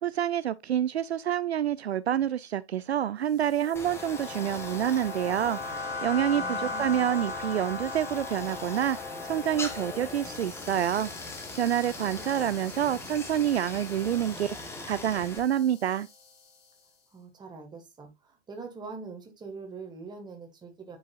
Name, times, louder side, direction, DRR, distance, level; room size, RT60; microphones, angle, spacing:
voice 1, 0.0-9.0 9.2-14.6 14.9-16.1, right 10 dB, 70° right, 0.5 m, -28 dB
sound 1, 3.3-16.7, left 3 dB, 45° left, 5.6 m, -40 dB
Stream, 3.8-15.4, left 3 dB, 5° left, 1.3 m, -41 dB
voice 2, 6.3-7.1 12.3-12.5 12.8-13.1 17.1-21.0, right 4 dB, 10° right, 1.9 m, -44 dB
9.4 x 5.5 x 2.5 m
figure-of-eight pair, 110°, 34 cm